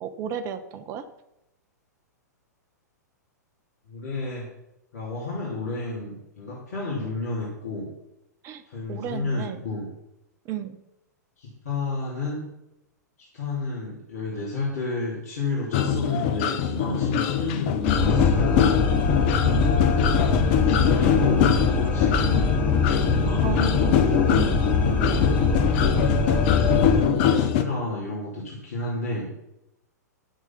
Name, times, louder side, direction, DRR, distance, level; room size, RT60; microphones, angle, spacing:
voice 1, 0.0-1.1 8.4-8.6 8.9-9.6 10.4-10.8 19.4-19.7 23.4-24.6, right 9 dB, 30° right, 11 dB, 0.9 m, -33 dB
voice 2, 3.9-4.5 4.9-7.9 8.6-9.9 11.4-12.5 13.3-18.8 20.2-22.5 23.0-23.8 24.2-25.4 26.7-29.3, left 2 dB, 55° left, -5 dB, 3.0 m, -31 dB
sound 1, 15.7-27.6, left 9 dB, 40° left, 0.8 m, -23 dB
sound 2, 17.8-27.0, left 3 dB, 20° left, 2.5 m, -23 dB
10.5 x 6.5 x 5.7 m, 0.87 s
figure-of-eight pair, 105°, 9 cm